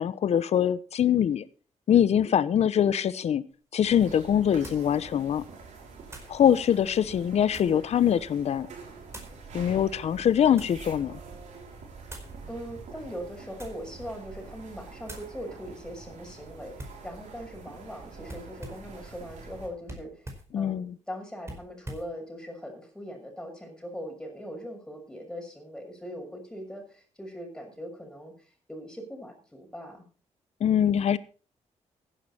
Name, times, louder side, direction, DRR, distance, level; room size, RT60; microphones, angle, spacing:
voice 1, 0.0-1.4 1.9-3.4 3.7-5.4 6.3-8.7 9.5-11.2 20.5-20.9 30.6-31.2, left 9 dB, 60° left, 17 dB, 0.8 m, -23 dB
sound 1, 3.5-3.6 4.6-4.9 6.1-6.4 7.1-7.9 9.1-9.4 10.2-10.8 12.1-12.4 13.5-13.9 14.4-14.6 15.0-15.3 16.8-17.1 18.3-18.9 19.8-20.5 21.4-22.1, right 1 dB, 20° right, 4.8 m, -44 dB
sound 2, 3.8-19.7, right 4 dB, 75° right, 6.1 m, -46 dB
voice 2, 12.5-30.0, equal, 5° left, 3 dB, 6.2 m, -41 dB
15.5 x 11.0 x 4.3 m, 0.39 s
cardioid pair, 100°, 12 cm